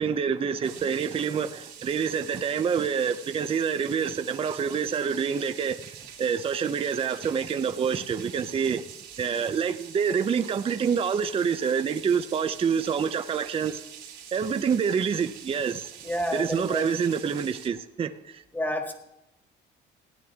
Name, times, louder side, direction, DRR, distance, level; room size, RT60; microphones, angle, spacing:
voice 1, 0.0-8.8 9.2-13.8 14.3-15.9 16.3-18.4, right 6 dB, 30° right, 0.6 m, -27 dB
sound 1, 0.6-17.7, right 9 dB, 80° right, 2.8 m, -45 dB
voice 2, 16.0-17.0 18.5-18.9, equal, 10° left, 1.7 m, -30 dB
16.5 x 9.7 x 3.5 m
cardioid pair, 125°, 19 cm